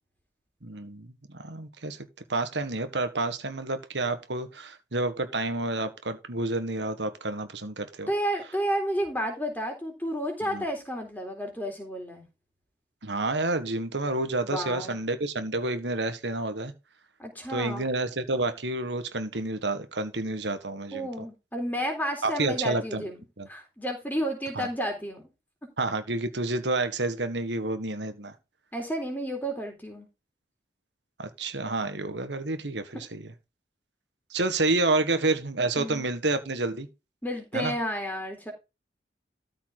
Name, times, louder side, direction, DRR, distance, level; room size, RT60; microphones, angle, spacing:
voice 1, 0.6-2.0 2.3-8.1 10.5-10.6 13.0-16.7 17.5-21.1 22.2-23.0 23.4-23.5 24.5-24.7 25.8-28.3 31.2-33.3 34.3-36.9 37.5-37.7, right 2 dB, 85° right, 1.7 m, -29 dB
voice 2, 8.1-12.3 14.4-15.0 17.2-17.9 20.9-23.2 23.5-25.2 28.7-30.1 35.8-36.0 37.2-38.5, equal, 10° left, 3.8 m, -31 dB
13.5 x 5.8 x 4.0 m
head